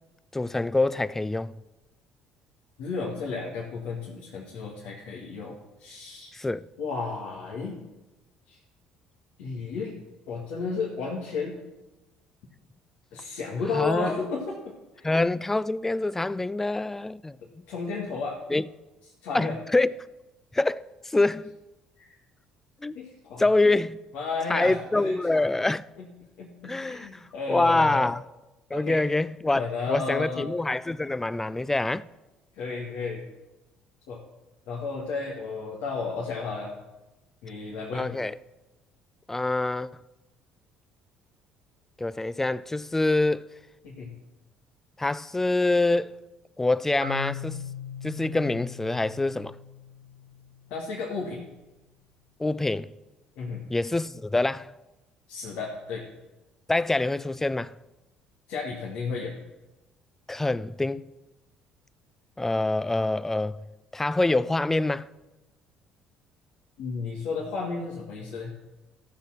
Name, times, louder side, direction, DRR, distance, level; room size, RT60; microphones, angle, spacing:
voice 1, 0.3-1.5 6.3-6.7 13.7-14.1 15.0-17.4 18.5-18.6 19.3-19.9 20.5-21.5 22.8-23.0 23.4-24.0 24.5-25.8 26.6-27.1 27.5-28.2 28.7-32.1 37.9-38.3 39.3-40.0 42.0-43.5 45.0-46.2 46.6-47.6 48.0-49.5 52.4-52.9 53.7-54.7 56.7-57.7 60.3-61.1 62.4-63.6 63.9-65.1, left 2 dB, 15° left, 0.5 m, -25 dB
voice 2, 2.8-6.4 6.8-7.8 8.5-8.6 9.4-9.9 10.3-11.6 13.1-15.1 17.7-18.4 19.2-19.6 22.0-22.1 22.9-23.5 24.1-25.2 26.0-26.1 26.4-28.1 28.7-29.0 29.5-30.5 32.5-33.2 34.1-34.2 34.7-36.7 37.4-38.1 43.8-44.1 50.7-51.4 53.4-53.7 55.3-56.0 58.5-59.3 66.8-68.5, left 4 dB, 75° left, 2.0 m, -33 dB
Marimba xylophone, 47.0-50.9, left 6 dB, 90° left, 0.8 m, -40 dB
14.0 x 6.5 x 6.1 m
hypercardioid pair, 60°, 2 cm